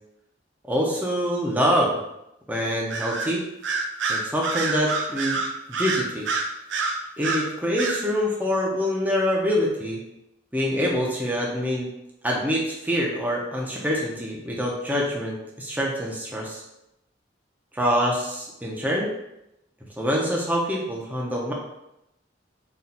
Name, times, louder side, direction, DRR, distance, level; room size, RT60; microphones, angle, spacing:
voice 1, 0.7-1.9 2.5-3.5 4.1-5.4 5.7-6.3 7.2-10.0 10.5-11.9 12.2-16.6 17.7-19.1 19.8-21.5, equal, 10° right, -3 dB, 0.6 m, -25 dB
Bird vocalization bird call bird song, 2.9-3.3 3.6-7.5 7.8-8.0, right 4 dB, 70° right, 0.5 m, -27 dB
4.1 x 2.4 x 4.2 m, 0.85 s
head